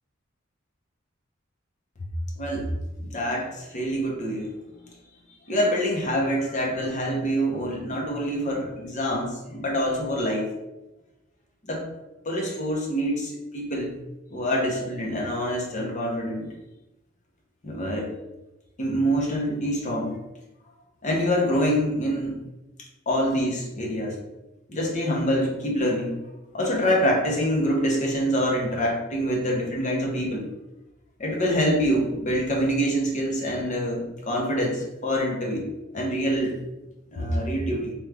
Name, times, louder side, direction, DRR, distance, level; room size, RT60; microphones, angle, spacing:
voice 1, 2.4-2.7 3.0-4.5 5.5-10.5 11.6-11.8 12.2-13.9 14.3-16.5 17.6-18.1 18.8-20.2 21.0-22.4 23.1-24.2 24.7-26.2 26.5-30.5 31.2-35.6 35.9-36.5 37.1-37.9, equal, 40° left, -1 dB, 0.7 m, -25 dB
3.1 x 2.3 x 3.3 m, 0.98 s
head